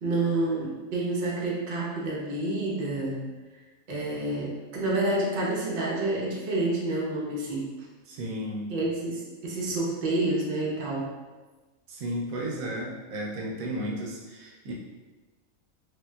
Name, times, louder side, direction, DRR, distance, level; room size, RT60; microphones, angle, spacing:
voice 1, 0.0-3.3 3.9-7.6 8.7-11.1, right 2 dB, 55° right, -4 dB, 0.5 m, -28 dB
voice 2, 8.1-8.7 11.9-14.7, equal, 70° right, -3 dB, 1.0 m, -33 dB
3.0 x 2.8 x 2.2 m, 1.3 s
omnidirectional pair, 1.6 m